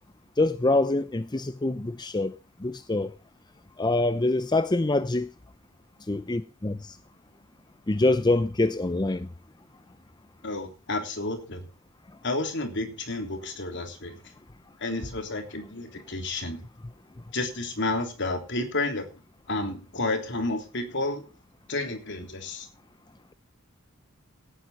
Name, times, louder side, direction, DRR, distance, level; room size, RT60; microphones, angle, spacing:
voice 1, 0.4-3.1 3.8-5.3 6.1-7.0 7.9-9.3, left 2 dB, 20° left, 0.6 m, -25 dB
voice 2, 10.4-11.6 12.2-14.2 14.8-16.6 17.3-19.0 19.5-21.2 21.7-22.7, left 2 dB, 55° left, 3.3 m, -31 dB
17.5 x 9.4 x 4.2 m
head